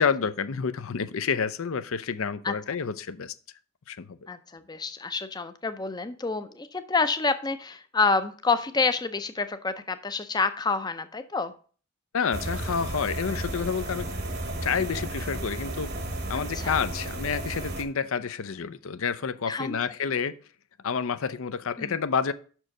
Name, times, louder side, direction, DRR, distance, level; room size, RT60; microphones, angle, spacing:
voice 1, 0.0-3.3 3.9-4.2 12.1-14.1 14.6-15.9 16.3-20.4 20.8-22.3, left 6 dB, 65° left, 0.5 m, -29 dB
voice 2, 2.4-2.8 4.3-11.5 16.3-16.9 19.5-19.8 21.8-22.0, left 4 dB, 20° left, 0.5 m, -28 dB
sound 1, 12.3-17.8, right 1 dB, 45° right, 1.0 m, -33 dB
6.2 x 4.6 x 6.5 m
head